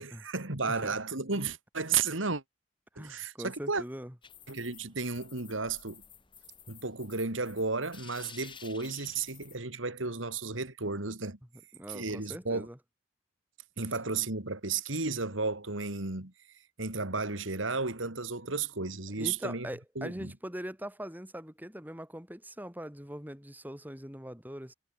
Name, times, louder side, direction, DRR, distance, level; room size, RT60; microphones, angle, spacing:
voice 1, 0.0-2.4 3.0-3.8 4.5-6.0 6.7-11.4 11.9-12.7 13.8-16.3 16.8-19.7 20.0-20.3, right 4 dB, 90° right, 3.1 m, -33 dB
voice 2, 2.9-4.1 11.8-12.8 19.2-24.7, equal, 10° right, 6.4 m, -42 dB
sound 1, 4.2-9.6, left 7 dB, 25° left, 5.2 m, -52 dB
head